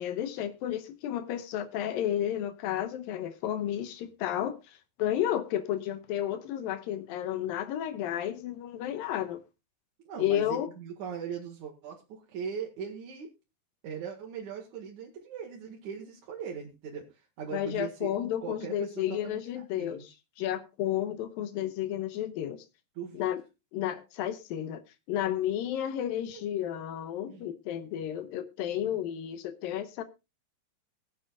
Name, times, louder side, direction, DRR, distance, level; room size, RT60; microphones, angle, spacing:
voice 1, 0.0-9.4 10.2-10.7 17.5-20.1 20.4-22.6 23.1-23.4 23.7-24.8 25.1-30.0, left 11 dB, 75° left, 2.6 m, -32 dB
voice 2, 10.0-13.3 13.8-18.1 18.4-20.0 22.9-23.3 26.3-26.4 27.3-27.5 28.7-29.0, right 7 dB, 60° right, 2.8 m, -40 dB
21.0 x 7.7 x 2.4 m
omnidirectional pair, 4.2 m